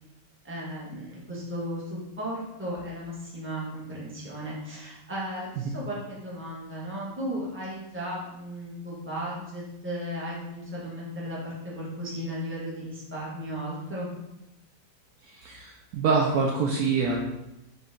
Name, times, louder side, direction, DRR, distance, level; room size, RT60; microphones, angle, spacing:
voice 1, 0.4-14.1, equal, 10° right, -6 dB, 0.9 m, -35 dB
voice 2, 15.3-17.2, right 4 dB, 70° right, -1 dB, 0.9 m, -25 dB
4.3 x 3.1 x 3.4 m, 0.90 s
omnidirectional pair, 1.8 m